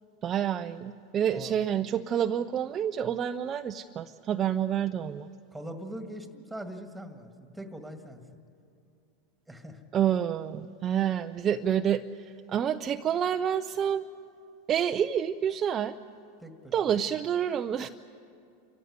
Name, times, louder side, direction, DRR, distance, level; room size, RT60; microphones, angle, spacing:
voice 1, 0.2-5.3 9.9-14.0 14.7-16.0 16.7-17.9, right 9 dB, 30° right, 7 dB, 0.5 m, -28 dB
voice 2, 5.5-8.2 9.5-9.8 16.4-16.7, right 1 dB, 5° right, 6 dB, 2.0 m, -42 dB
28.0 x 15.0 x 9.7 m, 2.5 s
supercardioid pair, 120°, 0 cm